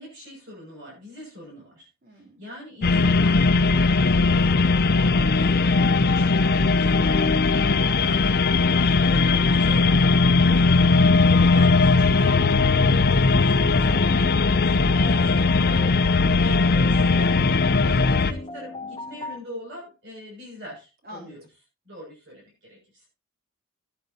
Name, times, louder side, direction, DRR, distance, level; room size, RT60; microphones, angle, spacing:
voice 1, 0.0-1.9 2.1-7.5 7.9-12.8 13.3-21.5 21.9-23.0, left 1 dB, 65° right, -4 dB, 6.9 m, -42 dB
voice 2, 2.0-2.5 12.8-13.0 21.0-21.4, left 1 dB, 50° right, 2 dB, 3.5 m, -44 dB
sound 1, 2.8-18.3, left 3 dB, 50° left, 0.6 m, -19 dB
sound 2, 13.8-19.4, left 3 dB, 30° left, 0.8 m, -38 dB
16.5 x 9.7 x 2.9 m, 0.29 s
head